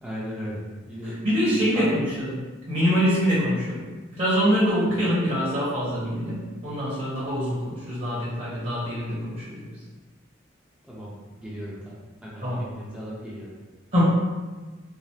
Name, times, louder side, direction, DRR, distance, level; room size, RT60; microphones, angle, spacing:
voice 1, 0.0-2.0 4.8-4.9 10.8-11.1 11.4-11.9 12.2-13.5, equal, 5° right, -8 dB, 0.7 m, -36 dB
voice 2, 1.0-3.8 4.1-9.7 12.4-12.7 13.9-14.1, equal, 45° right, -10 dB, 1.1 m, -25 dB
4.8 x 2.0 x 2.8 m, 1.3 s
head